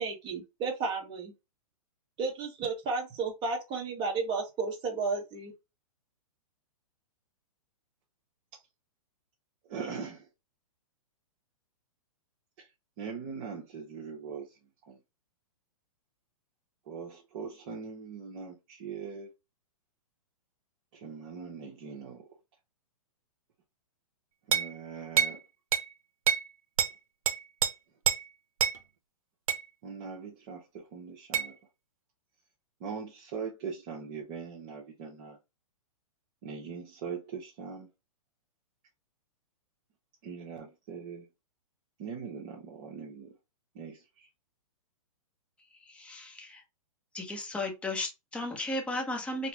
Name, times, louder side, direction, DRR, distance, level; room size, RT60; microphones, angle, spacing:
voice 1, 0.0-1.3 2.2-5.5, right 4 dB, 25° right, 1.3 m, -33 dB
voice 2, 9.7-10.2 13.0-14.5 14.9-15.0 16.9-19.3 21.0-22.2 24.5-25.4 29.8-31.5 32.8-35.4 36.4-37.9 40.2-41.2 42.0-43.3 43.7-44.0, right 6 dB, 45° right, 1.3 m, -41 dB
Banging to glass, 24.5-24.7 25.2-25.4 25.7-25.9 26.3-26.5 26.8-26.9 27.3-27.7 28.1-28.2 28.6-28.8 29.5-29.6 31.3-31.5, right 8 dB, 70° right, 0.8 m, -26 dB
voice 3, 45.8-46.6 47.1-49.5, left 2 dB, 5° left, 1.0 m, -35 dB
4.1 x 2.4 x 2.9 m
hypercardioid pair, 135°, 18 cm